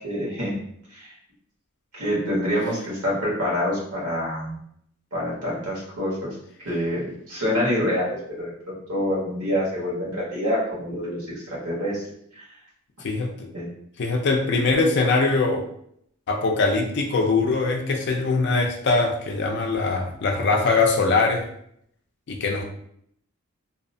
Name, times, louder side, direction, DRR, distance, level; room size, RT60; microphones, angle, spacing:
voice 1, 0.0-0.6 0.9-1.1 1.9-4.6 5.1-6.3 6.6-8.1 8.4-12.0 12.3-12.4 13.5-13.7, equal, 85° right, -6 dB, 1.3 m, -26 dB
voice 2, 13.0-13.5 14.0-15.6 16.3-21.4 22.3-22.6, left 3 dB, 50° left, 2 dB, 0.4 m, -22 dB
2.7 x 2.0 x 2.6 m, 0.70 s
head